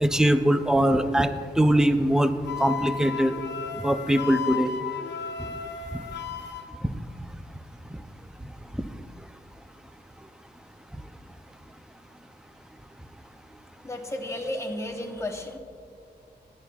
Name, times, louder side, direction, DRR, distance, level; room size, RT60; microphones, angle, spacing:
voice 1, 0.0-2.3 2.6-3.3 3.8-4.7 5.9-6.0, right 1 dB, 5° right, 9 dB, 0.4 m, -22 dB
Wind instrument woodwind instrument, 2.5-6.7, left 7 dB, 80° left, 0.7 m, -34 dB
voice 2, 13.8-15.6, left 1 dB, 15° left, 2 dB, 0.9 m, -33 dB
18.0 x 10.0 x 2.3 m, 2.5 s
wide cardioid pair, 165°, 18 cm